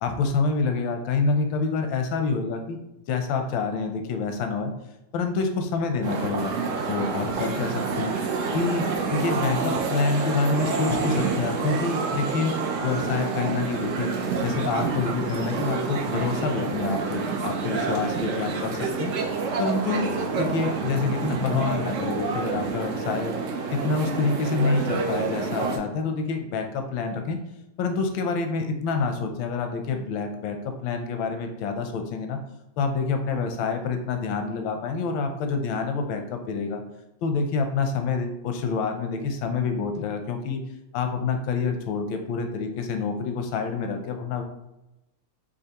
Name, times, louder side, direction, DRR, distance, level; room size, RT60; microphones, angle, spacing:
voice 1, 0.0-2.8 3.1-4.7 5.1-6.5 6.9-8.1 8.5-12.5 12.8-14.1 14.4-19.1 19.6-23.3 23.7-27.4 27.8-32.4 32.8-36.8 37.2-40.6 40.9-44.4, left 4 dB, 85° left, 5 dB, 1.4 m, -27 dB
sound 1, 6.0-25.8, right 4 dB, 70° right, 0.7 m, -28 dB
Bowed string instrument, 18.4-22.5, right 2 dB, 45° right, 1.0 m, -43 dB
6.5 x 2.6 x 2.9 m, 0.93 s
omnidirectional pair, 2.1 m